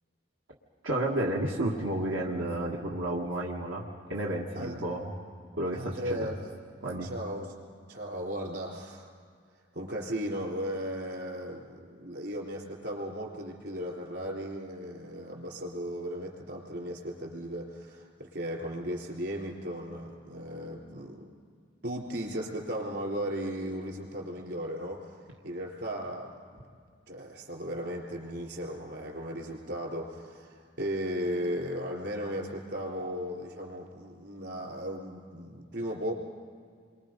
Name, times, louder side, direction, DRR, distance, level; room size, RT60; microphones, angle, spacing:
voice 1, 0.8-3.8 4.1-5.1 5.6-6.3 6.8-7.1, right 1 dB, 90° right, -3 dB, 1.9 m, -31 dB
voice 2, 5.7-6.4 7.0-7.5 7.9-9.1 9.7-21.3 21.8-25.2 25.4-26.7 27.1-36.1, equal, 60° right, 0 dB, 3.8 m, -36 dB
28.5 x 23.5 x 5.3 m, 2.1 s
head